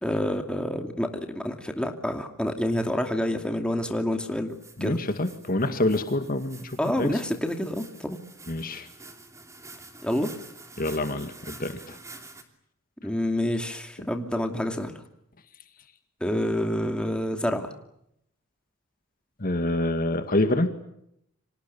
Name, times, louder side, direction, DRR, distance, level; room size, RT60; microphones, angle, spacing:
voice 1, 0.0-4.5 4.8-5.0 6.8-8.2 10.0-10.3 13.0-14.9 16.2-17.7, left 1 dB, 5° left, 4 dB, 2.6 m, -28 dB
sound 1, 4.5-12.4, right 3 dB, 15° right, 3.0 m, -48 dB
voice 2, 4.8-7.2 8.5-8.9 10.8-12.0 14.0-14.1 19.4-20.7, left 1 dB, 40° left, 8 dB, 2.1 m, -27 dB
30.0 x 26.0 x 7.1 m, 0.77 s
head